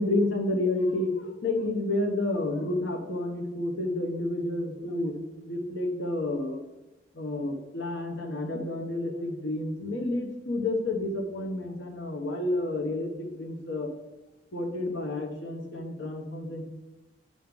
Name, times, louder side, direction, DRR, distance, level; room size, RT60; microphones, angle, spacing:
voice 1, 0.0-6.6 7.1-13.9 14.5-16.6, left 2 dB, 80° left, 3 dB, 1.0 m, -30 dB
9.2 x 3.2 x 5.2 m, 1.0 s
head